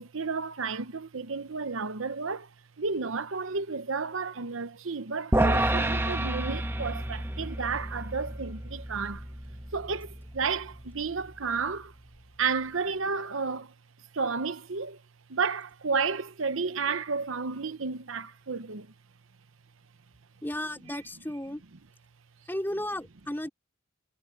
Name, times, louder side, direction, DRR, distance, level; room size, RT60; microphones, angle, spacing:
voice 1, 0.0-2.5 2.8-9.3 9.7-11.9 12.4-13.7 14.1-15.0 15.3-18.9, right 5 dB, 75° right, 0.9 m, -32 dB
sound 1, 5.3-11.7, right 1 dB, 10° right, 1.2 m, -30 dB
voice 2, 20.4-21.6 22.5-23.5, left 1 dB, 10° left, 2.7 m, -34 dB
head